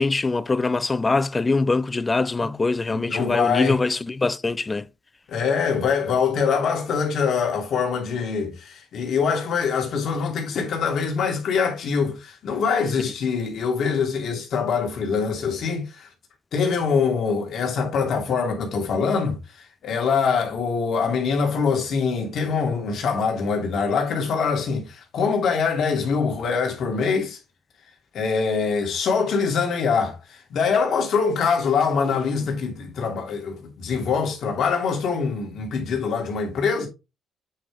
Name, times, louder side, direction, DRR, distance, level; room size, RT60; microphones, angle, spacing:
voice 1, 0.0-4.9, left 3 dB, 25° left, 0.6 m, -23 dB
voice 2, 2.9-3.8 5.3-16.1 16.5-19.4 19.8-27.4 28.1-36.9, left 5 dB, 65° left, 2.7 m, -24 dB
8.5 x 5.1 x 3.5 m
cardioid pair, 90°, 0 cm